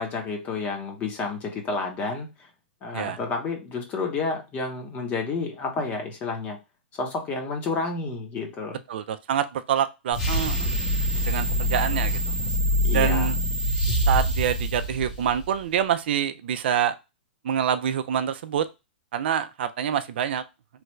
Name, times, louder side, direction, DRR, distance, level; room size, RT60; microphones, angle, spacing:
voice 1, 0.0-2.5 2.8-6.6 6.9-8.8 12.8-13.3, left 4 dB, 25° left, 3 dB, 0.8 m, -30 dB
voice 2, 8.9-10.7 11.2-12.2 12.9-13.3 14.1-16.9 17.4-18.6 19.1-20.4, right 9 dB, 65° right, 11 dB, 0.3 m, -26 dB
sound 1, 10.1-15.5, equal, 45° left, 1.4 m, -25 dB
3.2 x 2.3 x 3.0 m, 0.25 s
hypercardioid pair, 140°, 6 cm